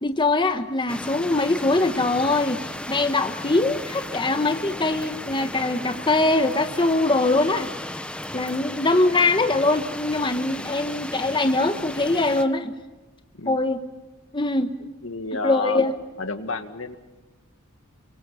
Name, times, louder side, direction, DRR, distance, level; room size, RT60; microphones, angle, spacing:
voice 1, 0.0-7.7 8.3-12.7 13.4-13.8 14.3-14.7 15.4-15.9, left 2 dB, 25° left, 7 dB, 1.2 m, -22 dB
sound 1, 0.9-12.4, left 1 dB, 5° left, 1.0 m, -35 dB
voice 2, 14.8-15.8 16.2-17.0, left 3 dB, 70° left, 8 dB, 1.9 m, -31 dB
30.0 x 24.0 x 5.7 m, 1.1 s
head